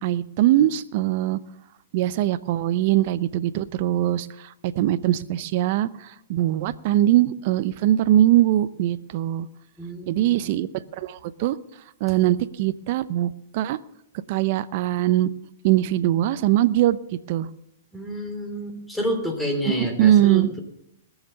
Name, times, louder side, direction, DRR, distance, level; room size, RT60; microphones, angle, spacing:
voice 1, 0.0-1.4 1.9-9.5 10.1-10.7 11.0-11.6 12.0-13.8 14.3-15.3 15.6-17.0 17.3-17.5 19.8-20.6, right 13 dB, 50° right, 15 dB, 0.7 m, -21 dB
voice 2, 9.8-10.5 17.9-20.6, equal, 5° left, 3 dB, 3.0 m, -29 dB
20.0 x 7.3 x 6.7 m, 0.77 s
hypercardioid pair, 125°, 0 cm